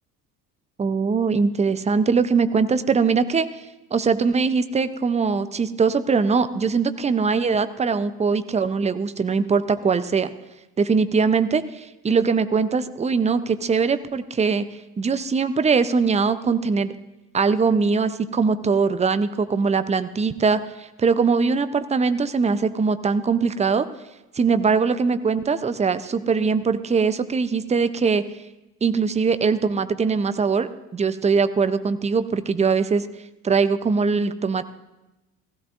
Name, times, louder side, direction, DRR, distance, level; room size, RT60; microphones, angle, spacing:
voice 1, 0.8-3.6 3.9-10.3 10.8-14.6 15.0-16.9 17.3-23.9 24.3-28.2 28.8-33.1 33.4-34.6, right 5 dB, 15° right, 12 dB, 0.7 m, -21 dB
16.0 x 15.0 x 2.7 m, 0.98 s
figure-of-eight pair, 60°, 46 cm